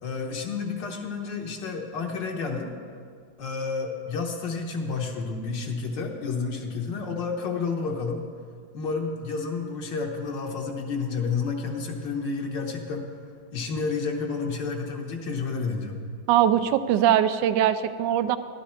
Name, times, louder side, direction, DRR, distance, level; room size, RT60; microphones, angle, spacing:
voice 1, 0.0-2.8 3.4-8.3 8.7-13.1 13.5-16.0, left 4 dB, 70° left, 1 dB, 1.6 m, -30 dB
voice 2, 16.3-18.4, right 10 dB, 75° right, 13 dB, 1.2 m, -21 dB
12.0 x 12.0 x 4.3 m, 2.1 s
omnidirectional pair, 2.1 m